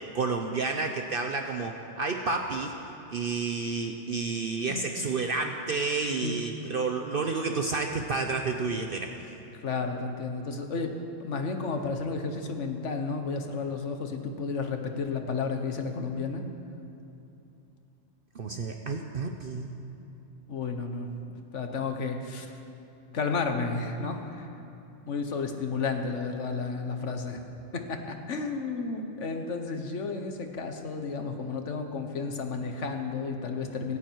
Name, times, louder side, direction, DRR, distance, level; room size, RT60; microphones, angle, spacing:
voice 1, 0.1-2.7 3.1-9.1 18.3-19.7, right 4 dB, 50° right, 4 dB, 0.9 m, -30 dB
voice 2, 9.6-16.4 20.5-22.5 23.1-24.5 25.1-27.4 27.7-34.0, left 4 dB, 75° left, 5 dB, 1.5 m, -32 dB
17.0 x 16.5 x 4.7 m, 2.9 s
omnidirectional pair, 1.3 m